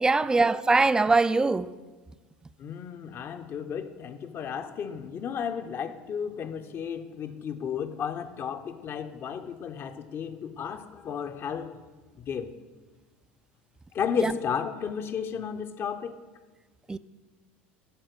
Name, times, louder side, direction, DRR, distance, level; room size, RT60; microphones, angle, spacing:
voice 1, 0.0-1.7 14.2-14.3 16.9-17.0, right 3 dB, 10° right, 0.4 m, -22 dB
voice 2, 2.6-11.8 12.2-12.5 13.9-16.2, left 7 dB, 40° left, 0.8 m, -33 dB
11.0 x 4.3 x 7.9 m
hypercardioid pair, 85°, 6 cm